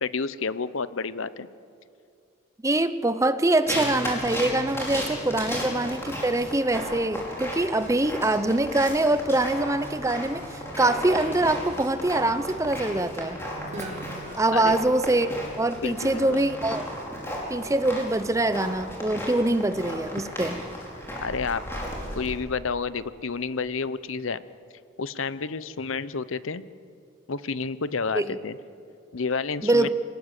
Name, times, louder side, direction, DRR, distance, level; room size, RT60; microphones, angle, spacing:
voice 1, 0.0-1.5 14.5-14.7 15.8-16.4 21.2-21.6 22.1-24.4 25.0-26.6 27.3-28.6 29.1-29.9, left 4 dB, 70° left, 15 dB, 0.8 m, -30 dB
voice 2, 2.6-13.4 14.4-16.9 17.5-20.6 28.1-28.4 29.6-29.9, right 2 dB, 15° right, 12 dB, 0.7 m, -24 dB
sound 1, 3.7-22.3, equal, 10° left, 5.3 m, -34 dB
Guitar, 13.7-17.5, right 1 dB, 35° right, 2.4 m, -44 dB
27.5 x 18.5 x 8.3 m, 2.5 s
head